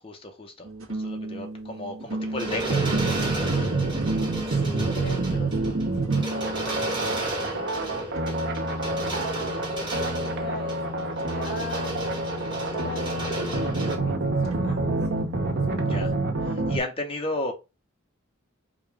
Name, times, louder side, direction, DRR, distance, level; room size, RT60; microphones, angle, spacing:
voice 1, 0.0-3.1 15.8-16.1 16.4-17.5, left 2 dB, 25° left, 0.8 m, -34 dB
sound 1, 0.6-7.3 8.1-16.2, left 1 dB, 75° right, 1.2 m, -35 dB
sound 2, 2.1-14.0, right 2 dB, 20° right, 1.3 m, -33 dB
sound 3, 2.6-16.8, right 3 dB, 55° right, 0.7 m, -28 dB
voice 2, 4.5-5.6 5.9-8.2 9.0-11.9 12.7-15.2 15.7-16.0, left 2 dB, 50° left, 0.5 m, -42 dB
5.1 x 2.4 x 3.4 m
head